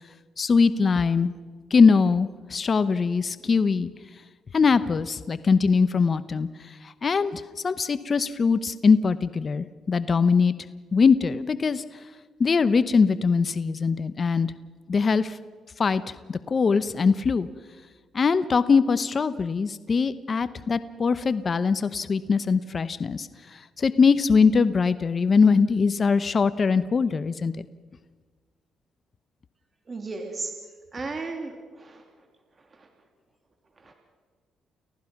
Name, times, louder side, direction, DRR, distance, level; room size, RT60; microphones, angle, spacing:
voice 1, 0.4-1.3 1.7-3.9 4.5-10.5 10.9-11.8 12.4-14.5 14.9-15.4 15.8-17.5 18.1-27.6, left 5 dB, 40° left, 13 dB, 0.8 m, -22 dB
voice 2, 29.9-30.5 30.9-32.0 32.7-32.9 33.8-33.9, right 3 dB, 35° right, 3 dB, 3.0 m, -35 dB
30.0 x 15.0 x 6.0 m, 1.4 s
cardioid pair, 90°, 0 cm